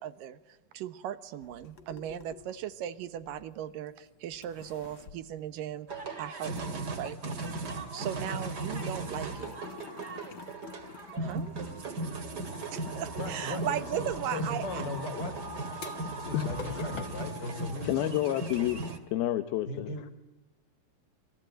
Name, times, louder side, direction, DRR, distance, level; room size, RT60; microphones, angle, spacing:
voice 1, 0.0-7.2 7.9-9.6 11.2-11.5 12.7-14.8, right 10 dB, 70° right, 13 dB, 2.6 m, -37 dB
sound 1, 1.4-3.9 4.3-6.1 6.4-18.1, left 6 dB, 55° left, 1.4 m, -48 dB
sound 2, 5.9-19.0, right 2 dB, 30° right, 2.3 m, -37 dB
voice 2, 13.2-15.4 16.2-18.2 19.7-20.2, left 2 dB, 30° left, 9 dB, 3.8 m, -38 dB
voice 3, 17.8-18.8 19.1-19.9, left 14 dB, 85° left, 10 dB, 3.0 m, -29 dB
28.0 x 22.0 x 9.1 m, 1.0 s
omnidirectional pair, 4.2 m